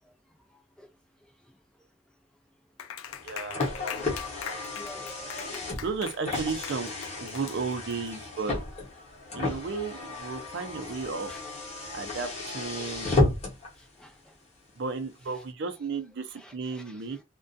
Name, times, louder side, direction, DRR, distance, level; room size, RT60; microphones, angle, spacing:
Clapping, 2.8-8.1, left 9 dB, 85° left, 0.4 m, -41 dB
Car, 3.1-13.7, left 2 dB, 35° left, 0.9 m, -32 dB
voice 1, 3.2-3.6 5.8-6.9 7.2-8.6 9.3-11.3 11.9-13.2 14.8-17.2, right 4 dB, 60° right, 0.5 m, -34 dB
voice 2, 4.8-5.9 9.2-9.5 11.3-11.4 13.0-13.1 13.8-14.2 16.4-17.0, left 1 dB, 5° left, 0.4 m, -50 dB
2.4 x 2.2 x 2.5 m
head